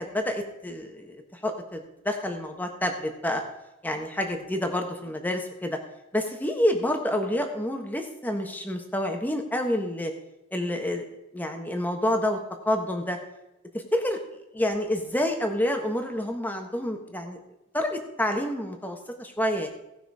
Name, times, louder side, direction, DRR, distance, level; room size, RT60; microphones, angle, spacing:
voice 1, 0.0-3.4 3.8-5.8 6.1-10.1 10.5-11.0 11.3-12.4 12.6-13.2 13.7-17.4 17.7-19.7, left 1 dB, 10° left, 4 dB, 1.3 m, -28 dB
17.5 x 6.1 x 4.8 m, 0.92 s
head